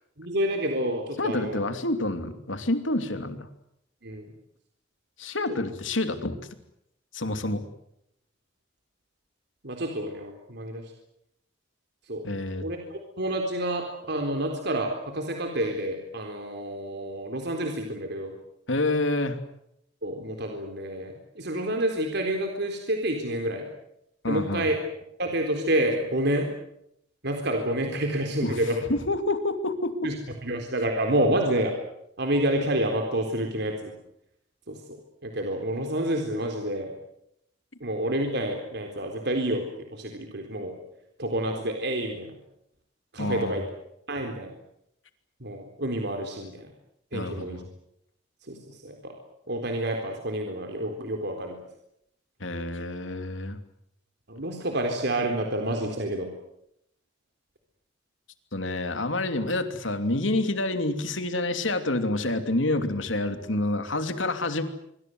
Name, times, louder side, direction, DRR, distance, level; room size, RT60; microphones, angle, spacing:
voice 1, 0.2-1.7 4.0-4.2 9.6-10.8 12.1-12.2 12.6-18.3 20.0-23.7 24.3-24.8 25.2-26.5 27.2-28.8 30.0-30.1 30.4-31.7 32.2-33.9 34.7-34.8 35.2-36.9 37.8-39.6 39.9-40.7 41.2-42.3 43.1-43.6 44.1-44.5 45.4-46.6 47.1-47.6 48.5-48.6 48.8-49.1 49.5-51.6 54.3-56.3, right 1 dB, 60° right, 3 dB, 4.0 m, -28 dB
voice 2, 1.2-3.5 5.2-6.4 7.1-7.6 12.2-12.7 18.7-19.4 24.2-24.7 28.4-30.1 43.2-43.6 47.1-47.7 52.4-53.6 58.5-64.6, left 2 dB, 90° left, 8 dB, 2.9 m, -28 dB
25.5 x 24.0 x 7.9 m, 0.78 s
head